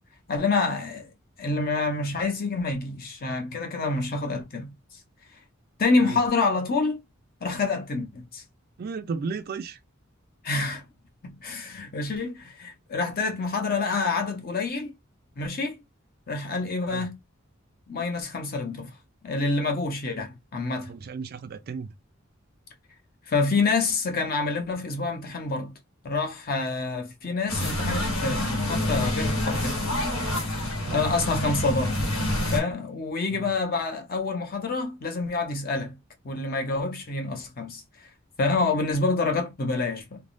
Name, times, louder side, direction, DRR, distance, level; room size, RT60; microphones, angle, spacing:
voice 1, 0.3-1.1 1.4-4.7 5.8-7.0 7.4-8.4 10.4-10.8 11.2-14.9 15.4-15.8 16.3-17.1 17.9-18.9 19.2-20.9 23.3-25.7 26.0-29.8 30.9-32.0 32.5-36.0 36.2-37.8 38.4-40.2, left 3 dB, 45° left, 0.7 m, -27 dB
voice 2, 8.8-9.8 16.9-17.1 20.9-21.9 30.9-31.1 33.3-33.5, right 5 dB, 45° right, 0.3 m, -34 dB
sound 1, 27.5-32.6, left 1 dB, 85° left, 1.2 m, -27 dB
3.2 x 2.1 x 2.5 m
head